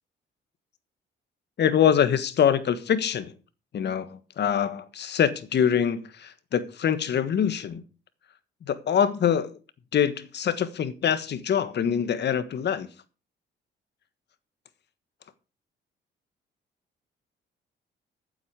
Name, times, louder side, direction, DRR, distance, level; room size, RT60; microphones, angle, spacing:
voice 1, 1.6-3.3 3.7-7.8 8.7-9.5 9.9-12.9, left 8 dB, 60° left, 1.5 m, -24 dB
14.5 x 8.1 x 4.8 m
cardioid pair, 90°, 20 cm